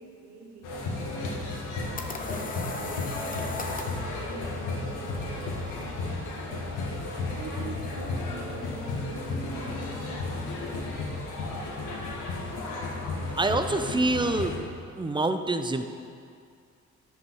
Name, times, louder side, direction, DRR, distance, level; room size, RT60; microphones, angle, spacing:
voice 1, 0.0-3.6 4.0-6.7 7.2-10.7, right 3 dB, 90° right, -6 dB, 2.3 m, -46 dB
sound 1, 0.6-14.6, left 2 dB, 80° left, 1.9 m, -33 dB
sound 2, 1.5-4.1, left 4 dB, 30° left, 0.9 m, -38 dB
voice 2, 13.4-14.5 15.0-15.9, right 2 dB, 15° right, 8 dB, 0.6 m, -26 dB
10.5 x 5.4 x 6.4 m, 2.3 s
cardioid pair, 90°, 30 cm